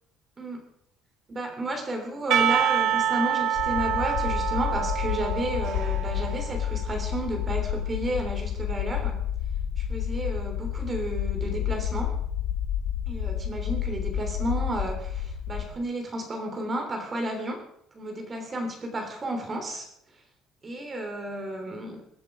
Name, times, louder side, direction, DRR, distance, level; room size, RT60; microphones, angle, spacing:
voice 1, 0.4-0.7 1.3-9.2 9.8-12.2 13.1-17.7 17.9-19.9 20.6-22.0, right 1 dB, 20° right, 3 dB, 3.2 m, -32 dB
Percussion / Church bell, 2.3-7.3, right 9 dB, 50° right, 0.8 m, -27 dB
sound 1, 3.5-15.7, left 9 dB, 75° left, 1.9 m, -30 dB
22.5 x 7.9 x 4.8 m, 0.72 s
cardioid pair, 175°, 0 cm